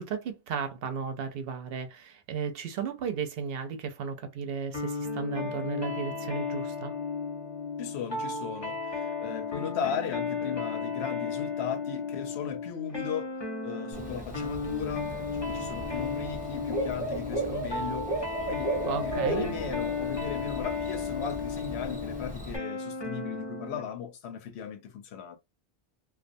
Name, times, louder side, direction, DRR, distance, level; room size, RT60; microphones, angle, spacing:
voice 1, 0.0-6.9 18.9-19.5, right 6 dB, 65° right, 0.7 m, -34 dB
sound 1, 4.7-23.9, left 4 dB, 30° left, 0.6 m, -34 dB
voice 2, 7.8-13.3 13.6-15.2 15.5-18.1 18.5-18.7 19.0-25.4, left 7 dB, 80° left, 0.9 m, -37 dB
Bird / Cricket, 13.9-22.6, right 2 dB, 10° right, 0.8 m, -35 dB
2.4 x 2.2 x 2.5 m
omnidirectional pair, 1.1 m